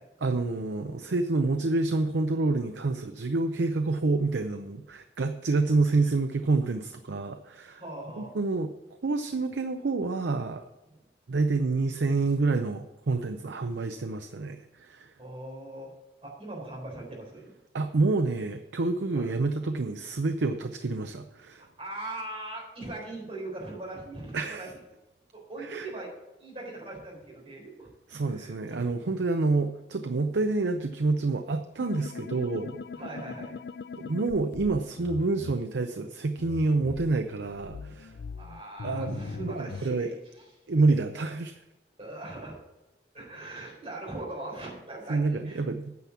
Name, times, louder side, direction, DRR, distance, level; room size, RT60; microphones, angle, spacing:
voice 1, 0.2-7.8 8.2-8.7 9.0-10.6 11.3-15.1 17.7-21.6 24.3-24.7 25.7-25.9 28.1-32.8 34.0-38.1 38.8-40.1 40.7-41.5 45.1-45.9, right 3 dB, 90° right, 7 dB, 0.6 m, -28 dB
voice 2, 7.8-8.3 15.2-15.9 16.2-17.5 19.1-19.3 21.5-24.8 25.3-26.1 26.4-27.9 28.2-28.8 30.1-30.3 32.9-33.6 38.4-40.1 40.4-40.5 42.0-42.6 43.1-45.6, right 2 dB, 35° right, -3 dB, 4.1 m, -40 dB
sound 1, 31.8-35.5 36.4-39.9, left 5 dB, 65° left, 0.3 m, -41 dB
9.4 x 5.8 x 8.4 m, 0.99 s
head